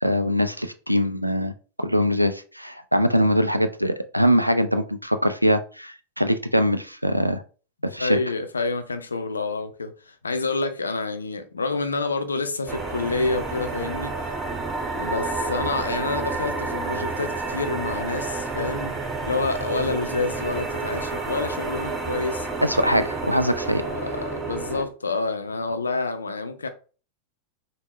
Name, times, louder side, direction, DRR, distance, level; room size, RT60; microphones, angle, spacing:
voice 1, 0.0-1.5 1.8-7.4 7.8-8.2 22.6-23.8, equal, 90° right, 0.3 m, -22 dB
voice 2, 8.0-14.3 15.0-19.0 19.2-22.5 23.5-26.7, left 3 dB, 75° left, 0.4 m, -28 dB
sound 1, 12.7-24.8, right 3 dB, 15° right, 0.7 m, -30 dB
3.6 x 2.1 x 3.0 m
figure-of-eight pair, 90°, 0 cm